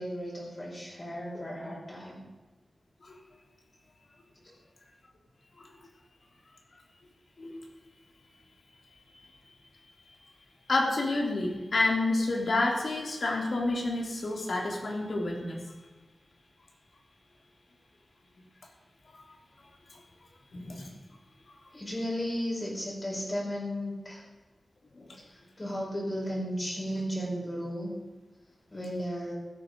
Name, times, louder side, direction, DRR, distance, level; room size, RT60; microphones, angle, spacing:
voice 1, 0.0-2.2 21.7-24.2 25.3-27.9 28.7-29.3, equal, 30° left, -4 dB, 5.4 m, -34 dB
voice 2, 10.7-15.6 19.2-19.4 20.5-20.9 21.5-21.6 24.9-25.2, left 2 dB, 60° left, 1 dB, 3.2 m, -29 dB
15.0 x 13.0 x 5.3 m, 1.2 s
wide cardioid pair, 115°, 0 cm